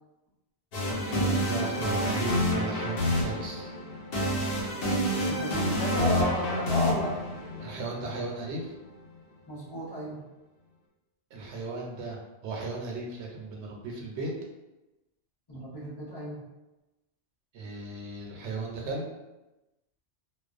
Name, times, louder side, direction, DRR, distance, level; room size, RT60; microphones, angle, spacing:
sound 1, 0.7-8.6, left 1 dB, 60° left, 0.8 m, -29 dB
voice 1, 0.9-3.7 7.6-8.7 11.3-14.3 17.5-19.1, right 3 dB, 80° right, -1 dB, 0.9 m, -36 dB
voice 2, 5.3-7.2 9.5-10.2 15.5-16.4, right 1 dB, 25° left, -9 dB, 0.7 m, -32 dB
2.3 x 2.2 x 2.4 m, 1.0 s
omnidirectional pair, 1.2 m